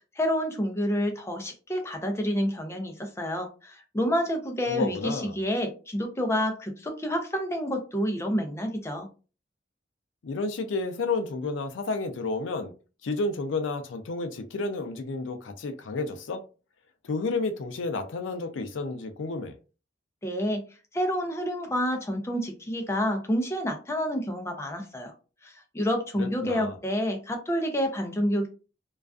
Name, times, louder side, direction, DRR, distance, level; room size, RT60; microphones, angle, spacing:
voice 1, 0.2-9.1 20.2-20.6 20.9-25.1 25.4-28.5, equal, 15° left, 0.5 m, -28 dB
voice 2, 4.6-5.4 10.2-12.7 13.0-16.4 17.0-19.6 26.2-26.7, left 3 dB, 80° left, 0.4 m, -31 dB
2.3 x 2.3 x 2.3 m
head